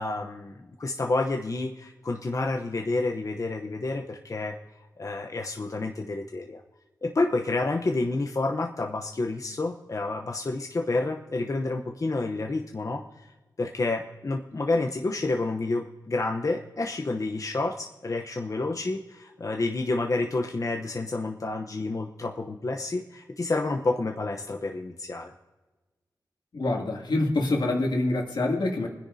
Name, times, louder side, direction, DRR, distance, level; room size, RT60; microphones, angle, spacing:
voice 1, 0.0-4.6 5.0-6.6 7.0-13.0 13.6-25.3, left 2 dB, 45° left, 2 dB, 0.9 m, -29 dB
voice 2, 26.5-28.9, left 2 dB, 75° left, 0 dB, 2.5 m, -26 dB
24.5 x 10.0 x 2.8 m, 1.2 s
wide cardioid pair, 85°, 8 cm